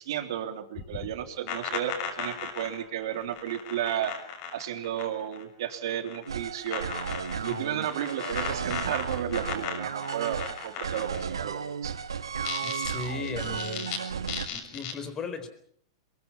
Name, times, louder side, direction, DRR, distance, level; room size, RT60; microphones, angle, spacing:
voice 1, 0.0-4.1 4.5-6.9 7.4-12.0, right 10 dB, 65° right, 7 dB, 3.4 m, -33 dB
sound 1, 0.8-5.4 5.7-6.3 6.7-11.4 12.3-14.0 14.3-14.9, left 8 dB, 50° left, 6.6 m, -37 dB
sound 2, 6.3-14.5, right 6 dB, 90° right, 1.5 m, -34 dB
voice 2, 12.6-14.0 14.3-15.5, left 5 dB, 25° left, 11 dB, 4.3 m, -37 dB
23.0 x 22.5 x 7.3 m, 0.64 s
hypercardioid pair, 110°, 2 cm